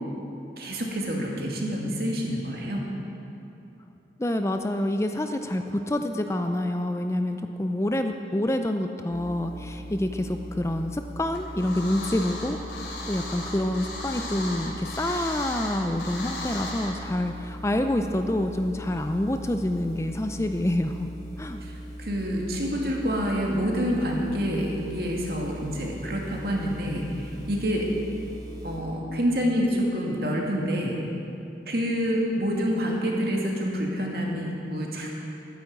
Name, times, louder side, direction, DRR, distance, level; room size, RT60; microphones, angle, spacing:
voice 1, 0.6-2.8 21.6-27.9 28.6-31.0 31.7-35.2, equal, 60° right, -1 dB, 2.4 m, -27 dB
voice 2, 4.2-21.1 21.4-21.6, left 1 dB, 15° left, 6 dB, 0.5 m, -27 dB
sound 1, 9.1-28.8, equal, 25° right, 2.5 m, -40 dB
sound 2, 11.3-16.9, left 2 dB, 85° left, 3.1 m, -36 dB
13.0 x 10.0 x 8.5 m, 2.9 s
head